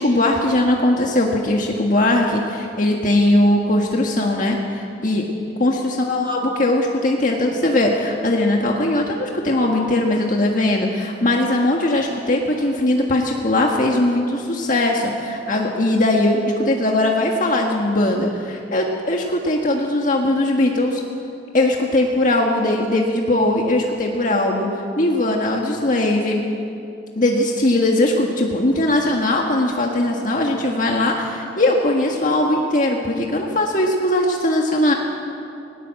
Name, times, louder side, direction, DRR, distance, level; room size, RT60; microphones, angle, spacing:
voice 1, 0.0-5.3 5.6-21.0 21.5-24.7 25.0-26.4 27.1-34.9, left 1 dB, 45° left, 0 dB, 1.6 m, -19 dB
20.0 x 19.0 x 7.7 m, 2.6 s
head